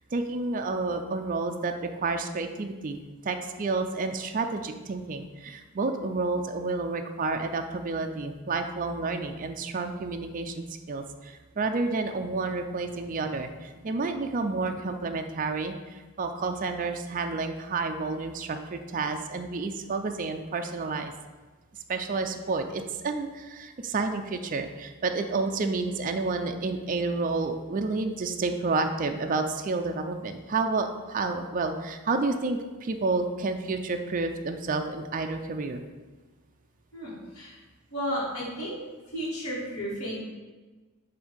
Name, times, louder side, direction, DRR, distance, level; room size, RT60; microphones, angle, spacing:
voice 1, 0.1-3.0 3.2-21.1 21.9-35.8, right 3 dB, 40° right, 5 dB, 0.4 m, -30 dB
voice 2, 36.9-37.6 37.9-38.8 39.1-40.2, equal, 85° left, -7 dB, 1.7 m, -33 dB
7.8 x 2.7 x 5.1 m, 1.3 s
head